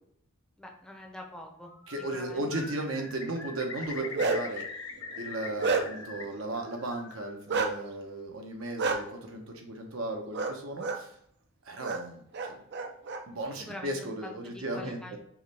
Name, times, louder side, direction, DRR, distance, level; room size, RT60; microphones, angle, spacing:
voice 1, 0.6-1.7 2.0-2.6 13.6-15.2, left 1 dB, 5° left, 1 dB, 0.7 m, -45 dB
Bird, 1.7-2.3 2.5-6.2 6.5-7.4, left 5 dB, 70° left, 0.8 m, -42 dB
voice 2, 1.9-4.6 5.2-11.1 11.6-12.6 13.3-15.2, right 1 dB, 75° right, 2 dB, 0.9 m, -36 dB
Bark, 3.8-4.6 5.1-6.1 7.5-7.7 8.8-9.0 10.3-10.5 10.8-11.0 11.8-12.0 12.3-13.2, right 4 dB, 55° right, 0.5 m, -29 dB
4.8 x 3.2 x 3.4 m, 0.67 s
head